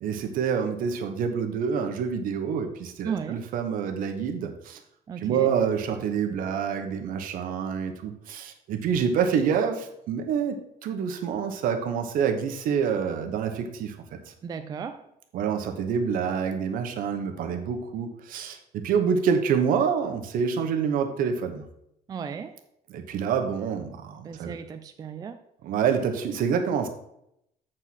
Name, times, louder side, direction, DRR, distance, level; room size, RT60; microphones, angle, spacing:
voice 1, 0.0-4.8 5.2-13.9 15.3-21.6 22.9-24.5 25.6-26.9, right 7 dB, 65° right, 5 dB, 1.2 m, -27 dB
voice 2, 3.0-3.4 5.1-5.5 14.4-15.0 22.1-22.6 24.2-25.4, right 6 dB, 25° right, 8 dB, 0.4 m, -35 dB
7.9 x 4.5 x 5.9 m, 0.78 s
cardioid pair, 165°, 15 cm